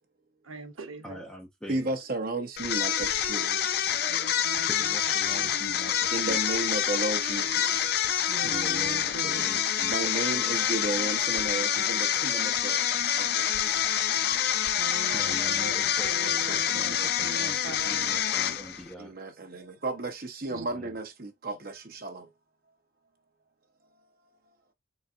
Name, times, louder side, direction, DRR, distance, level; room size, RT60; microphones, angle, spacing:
voice 1, 0.4-1.2 4.1-5.6 7.6-7.7 8.3-9.6 14.8-15.8 16.0-18.1 20.5-20.7, right 2 dB, 90° right, 0.9 m, -42 dB
voice 2, 1.0-1.9 4.7-6.4 8.4-10.3 15.1-17.5 17.8-19.1 20.5-20.9, equal, 5° left, 0.8 m, -43 dB
voice 3, 1.7-3.6 6.1-7.9 9.9-12.8 13.2-13.5 19.0-22.3, right 2 dB, 45° right, 0.8 m, -33 dB
sound 1, 2.6-18.9, left 10 dB, 50° left, 0.4 m, -27 dB
4.0 x 3.5 x 2.4 m
head